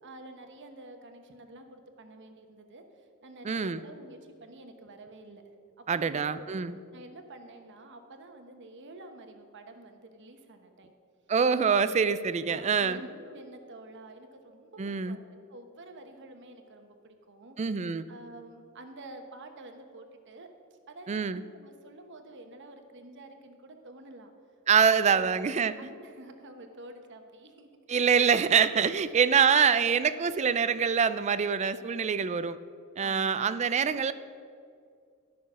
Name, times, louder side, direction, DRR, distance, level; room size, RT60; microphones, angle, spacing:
voice 1, 0.0-5.4 5.8-6.5 6.9-10.9 12.4-17.6 18.1-20.5 20.9-24.3 24.7-25.3 25.8-27.7 29.0-29.1 33.0-33.6, right 2 dB, 55° right, 6 dB, 1.0 m, -49 dB
voice 2, 3.4-3.8 5.9-6.7 11.3-13.1 14.8-15.2 17.6-18.1 21.1-21.4 24.7-25.7 27.9-32.6 33.0-34.1, right 6 dB, 30° right, 14 dB, 0.3 m, -25 dB
13.0 x 6.0 x 6.1 m, 2.3 s
head